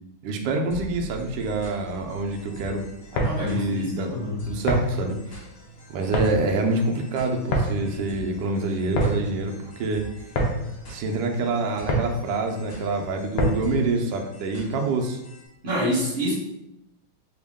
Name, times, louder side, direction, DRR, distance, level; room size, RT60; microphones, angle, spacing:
voice 1, 0.2-2.8 3.4-4.1 4.5-5.2 5.9-10.0 10.9-15.2, right 2 dB, 75° right, 3 dB, 1.0 m, -26 dB
sound 1, 0.7-15.5, right 2 dB, 60° left, 1.5 m, -44 dB
sound 2, 2.9-13.8, equal, 80° left, 0.7 m, -29 dB
voice 2, 3.2-4.5 15.6-16.3, equal, 35° right, -7 dB, 0.9 m, -27 dB
3.5 x 2.2 x 3.4 m, 0.86 s
omnidirectional pair, 2.2 m